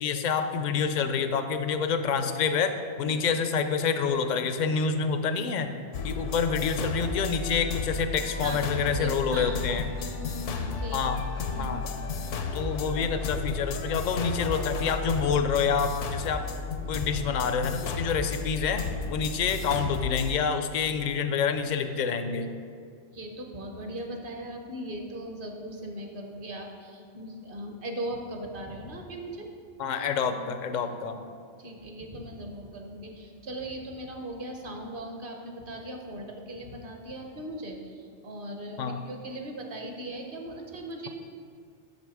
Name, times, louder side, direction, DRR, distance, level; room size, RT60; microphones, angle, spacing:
voice 1, 0.0-2.7 3.0-5.7 6.0-9.9 10.9-11.2 11.6-11.9 12.5-16.4 16.9-18.8 19.1-22.5 29.8-31.2 38.8-39.0, left 6 dB, 60° left, 8 dB, 0.5 m, -27 dB
sound 1, 5.9-20.4, left 4 dB, 90° left, 1.0 m, -33 dB
voice 2, 9.0-11.0 11.5-11.8 23.1-29.5 30.7-30.9 31.6-41.1, right 1 dB, 50° right, 2 dB, 1.0 m, -39 dB
6.7 x 6.4 x 4.8 m, 2.2 s
omnidirectional pair, 1.2 m